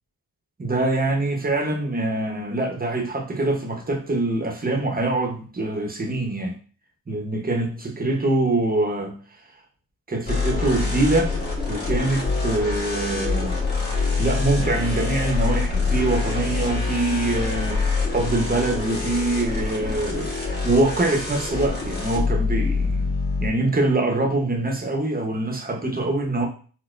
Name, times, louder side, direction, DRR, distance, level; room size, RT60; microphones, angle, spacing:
voice 1, 0.6-6.6 7.1-9.2 10.1-11.3 11.7-13.6 14.2-23.1 23.4-26.5, right 2 dB, 20° right, 0.9 m, -24 dB
sound 1, 10.3-23.5, left 4 dB, 25° left, 1.3 m, -25 dB
4.1 x 2.2 x 2.5 m
cardioid pair, 65°, 42 cm